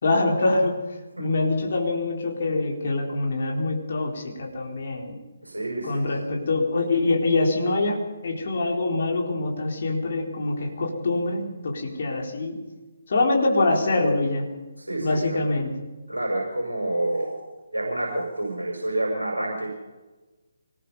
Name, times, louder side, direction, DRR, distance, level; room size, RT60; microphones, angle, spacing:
voice 1, 0.0-0.8 1.2-5.2 5.8-12.6 13.1-14.5 15.0-15.7, left 2 dB, 45° left, 0 dB, 4.0 m, -24 dB
voice 2, 5.4-6.0 14.8-15.5 16.1-17.4 17.7-19.7, right 1 dB, 80° right, 0 dB, 5.9 m, -28 dB
25.0 x 19.5 x 5.5 m, 1.2 s
figure-of-eight pair, 145°, 0 cm